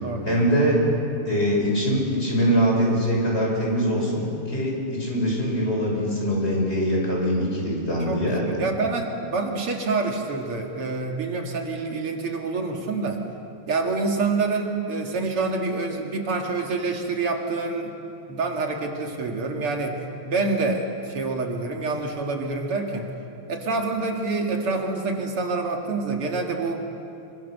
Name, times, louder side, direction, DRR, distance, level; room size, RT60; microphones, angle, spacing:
voice 1, 0.3-0.8 1.2-8.4, equal, 25° left, -3 dB, 6.9 m, -23 dB
voice 2, 8.1-13.2 13.7-17.9 18.3-23.1 23.5-26.8, right 3 dB, 80° right, 2 dB, 3.1 m, -27 dB
26.5 x 25.0 x 6.7 m, 2.7 s
omnidirectional pair, 2.4 m